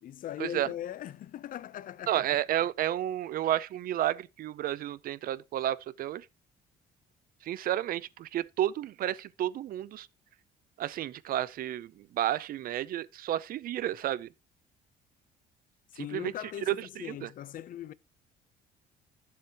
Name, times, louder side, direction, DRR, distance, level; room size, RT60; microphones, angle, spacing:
voice 1, 0.0-2.2 15.9-17.9, left 11 dB, 55° left, 0.7 m, -40 dB
voice 2, 2.1-6.3 7.4-10.1 10.8-14.3 16.0-16.3 16.7-17.3, right 12 dB, 60° right, 0.6 m, -31 dB
12.0 x 7.3 x 3.0 m
cardioid pair, 110°, 17 cm